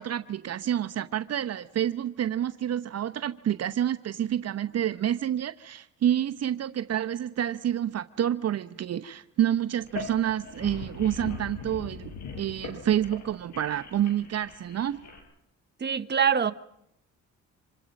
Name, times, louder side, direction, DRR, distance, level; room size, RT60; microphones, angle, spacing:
voice 1, 0.0-15.0, right 10 dB, 55° right, 0.9 m, -28 dB
sound 1, 9.8-15.2, left 5 dB, 65° left, 5.9 m, -41 dB
voice 2, 15.8-16.5, right 7 dB, 35° right, 1.3 m, -24 dB
27.0 x 26.5 x 5.3 m
cardioid pair, 90°, 30 cm